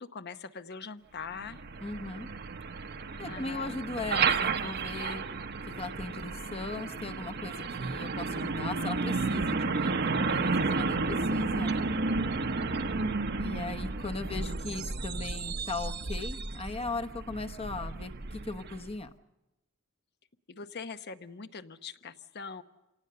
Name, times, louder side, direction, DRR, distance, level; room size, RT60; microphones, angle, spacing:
voice 1, 0.0-1.6 3.2-3.8 20.5-22.6, left 5 dB, 50° left, 11 dB, 0.9 m, -42 dB
Truck, 1.3-18.9, right 3 dB, 50° right, 0.9 m, -32 dB
voice 2, 1.8-2.3 3.2-5.2 5.8-11.9 13.4-19.1, left 3 dB, 30° left, 8 dB, 1.0 m, -38 dB
26.5 x 18.0 x 6.8 m, 1.0 s
head